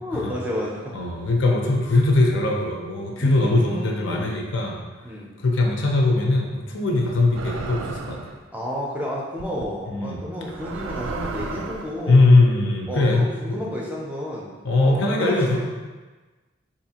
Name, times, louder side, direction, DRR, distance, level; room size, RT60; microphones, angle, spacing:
voice 1, 0.0-0.9 3.2-4.4 5.0-5.4 6.9-7.1 8.5-12.2 12.9-14.5 14.8-15.5, left 1 dB, 10° right, -4 dB, 0.5 m, -31 dB
voice 2, 0.9-4.8 5.4-8.2 9.9-10.2 12.1-13.2 13.5-13.6 14.6-15.6, left 2 dB, 75° left, 0 dB, 0.6 m, -20 dB
sound 1, 7.3-8.4 9.4-9.6 10.4-12.0, right 4 dB, 90° right, 0.3 m, -33 dB
4.1 x 2.6 x 2.8 m, 1.3 s
head